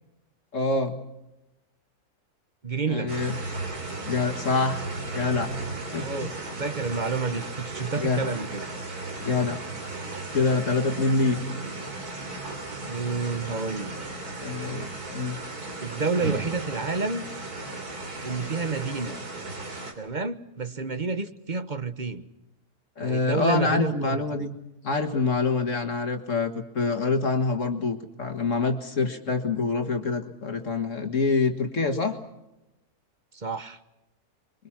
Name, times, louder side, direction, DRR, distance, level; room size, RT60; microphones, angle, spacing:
voice 1, 0.5-1.0 2.9-3.3 4.0-4.9 5.1-5.5 5.9-6.3 8.0-8.3 9.2-9.6 10.3-11.4 14.4-15.4 23.0-24.5 24.8-32.2, left 4 dB, 55° left, 5 dB, 2.0 m, -26 dB
voice 2, 2.6-3.1 6.0-6.3 6.6-8.7 12.9-14.0 15.8-17.2 18.2-19.2 19.9-22.3 23.0-24.4 33.3-33.8, right 4 dB, 35° right, 11 dB, 1.2 m, -29 dB
sound 1, 3.1-19.9, right 2 dB, 80° right, 3.9 m, -35 dB
27.0 x 23.0 x 5.9 m, 0.93 s
omnidirectional pair, 1.6 m